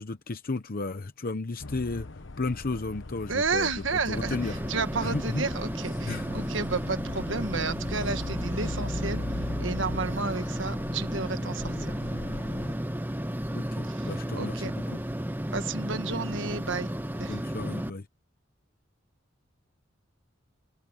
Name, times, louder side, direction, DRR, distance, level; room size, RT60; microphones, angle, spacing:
voice 1, 0.0-2.1 2.4-4.6 5.0-5.5 6.0-6.3 13.5-15.0 17.3-18.1, left 3 dB, 50° left, 0.9 m, -34 dB
sound 1, 1.6-12.7, left 2 dB, 70° left, 1.1 m, -38 dB
voice 2, 3.3-4.4 4.7-9.2 9.6-11.9 14.0-14.7 15.5-16.9 17.2-17.4, right 4 dB, 75° right, 1.4 m, -32 dB
sound 2, 4.1-17.9, equal, 10° right, 1.6 m, -33 dB
head